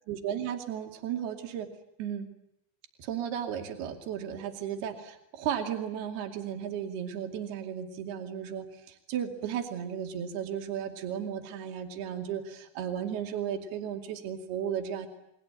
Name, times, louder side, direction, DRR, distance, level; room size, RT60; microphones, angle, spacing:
voice 1, 0.1-1.7 2.0-2.3 3.0-15.1, right 9 dB, 65° right, 4 dB, 4.4 m, -35 dB
30.0 x 22.0 x 8.9 m, 0.85 s
omnidirectional pair, 5.1 m